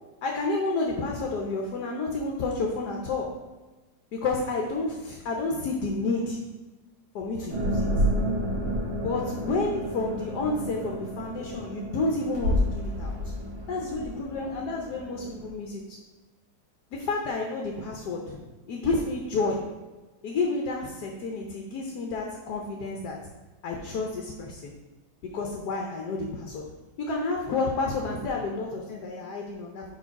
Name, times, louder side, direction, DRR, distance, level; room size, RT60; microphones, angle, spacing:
voice 1, 0.2-3.4 4.1-6.4 7.1-7.9 9.0-13.1 13.7-16.0 16.9-18.4 18.7-19.7 20.2-23.2 23.6-24.7 25.2-26.7 27.0-29.8, left 3 dB, 75° left, 1 dB, 1.3 m, -30 dB
sound 1, 7.5-15.5, equal, 85° right, 2.0 m, -30 dB
4.8 x 4.8 x 5.7 m, 1.2 s
omnidirectional pair, 1.8 m